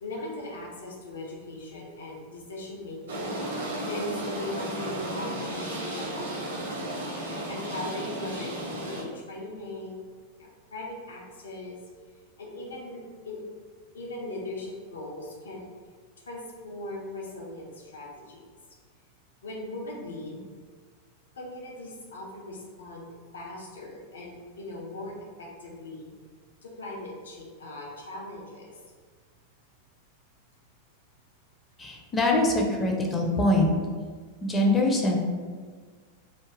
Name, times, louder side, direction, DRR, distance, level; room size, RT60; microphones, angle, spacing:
voice 1, 0.0-6.3 7.5-10.0 10.4-11.8 12.4-13.4 13.9-15.7 16.3-18.4 19.4-20.4 21.3-25.1 25.4-26.1 26.6-28.7, left 1 dB, 65° left, -2 dB, 0.5 m, -39 dB
sound 1, 3.1-9.0, right 1 dB, 65° right, 0.6 m, -34 dB
voice 2, 31.8-33.7 34.4-35.2, left 1 dB, 20° left, 0 dB, 0.4 m, -23 dB
2.4 x 2.1 x 3.2 m, 1.5 s
figure-of-eight pair, 90°, 0 cm